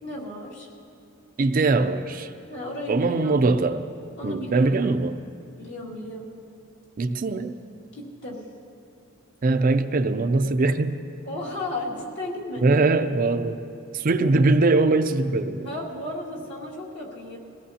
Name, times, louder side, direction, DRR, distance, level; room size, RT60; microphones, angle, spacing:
voice 1, 0.0-0.7 2.5-3.4 4.2-5.0 5.6-6.3 7.9-8.4 11.3-12.9 14.3-14.5 15.6-17.4, left 1 dB, 60° left, -4 dB, 2.4 m, -34 dB
voice 2, 1.4-2.3 2.9-3.9 4.2-5.2 7.0-7.5 9.4-11.1 12.6-13.6 13.9-15.7, right 3 dB, 40° right, 9 dB, 0.4 m, -22 dB
22.0 x 16.5 x 2.8 m, 2.6 s
head